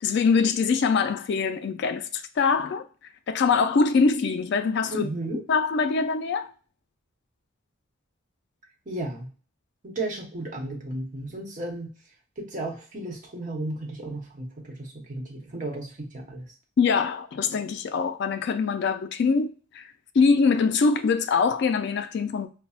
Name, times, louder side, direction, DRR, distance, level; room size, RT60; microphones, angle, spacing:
voice 1, 0.0-2.8 3.3-5.1 5.5-6.5 16.8-22.5, left 5 dB, 55° left, 0.3 m, -23 dB
voice 2, 4.9-5.4 8.9-9.3 9.8-11.9 12.4-16.5, right 1 dB, 40° right, 0.9 m, -34 dB
5.5 x 2.0 x 2.3 m
head